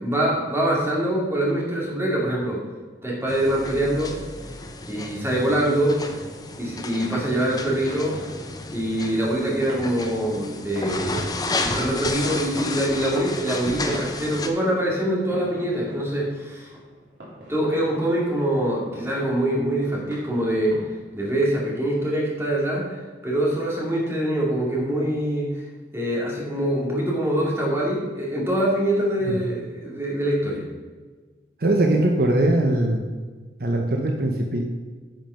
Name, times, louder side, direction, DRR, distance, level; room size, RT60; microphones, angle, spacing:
voice 1, 0.0-2.6 3.0-4.1 4.9-6.0 6.6-8.2 8.7-16.7 17.5-20.8 21.1-25.6 25.9-30.6, right 1 dB, 15° right, -4 dB, 2.3 m, -24 dB
sound 1, 3.3-14.5, left 2 dB, 20° left, 0.7 m, -32 dB
sound 2, 5.4-24.4, equal, 75° right, 3.3 m, -44 dB
voice 2, 31.6-33.0 33.6-34.7, right 1 dB, 55° right, 2 dB, 0.8 m, -21 dB
10.5 x 5.5 x 5.6 m, 1.4 s
head